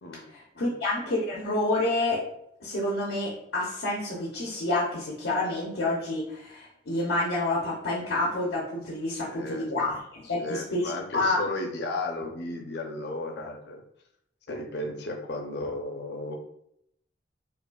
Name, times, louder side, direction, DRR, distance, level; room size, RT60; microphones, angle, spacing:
voice 1, 0.3-2.2 2.6-11.4, left 2 dB, 90° left, -4 dB, 0.9 m, -28 dB
voice 2, 9.1-9.9 10.4-13.8 14.5-16.4, left 2 dB, 60° left, 4 dB, 0.6 m, -34 dB
5.1 x 2.4 x 2.3 m, 0.74 s
head